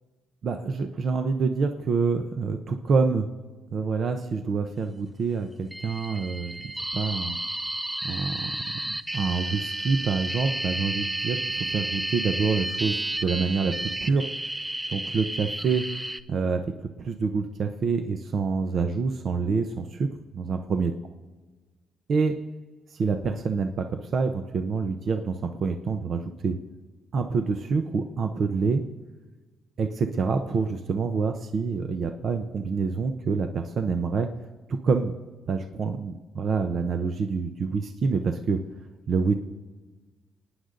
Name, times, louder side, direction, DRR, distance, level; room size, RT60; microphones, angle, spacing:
voice 1, 0.4-3.3 3.7-6.5 6.9-7.4 8.0-13.0 13.2-14.3 14.9-15.9 16.3-16.7 17.0-20.1 20.3-20.9 22.1-22.4 22.9-26.6 27.1-28.8 29.8-34.3 34.7-35.1 35.5-38.6 39.1-39.3, right 4 dB, 55° right, 7 dB, 0.9 m, -27 dB
sound 1, 5.7-16.2, right 2 dB, 10° right, 0.6 m, -32 dB
29.0 x 9.7 x 3.9 m, 1.3 s
cardioid pair, 90°, 0 cm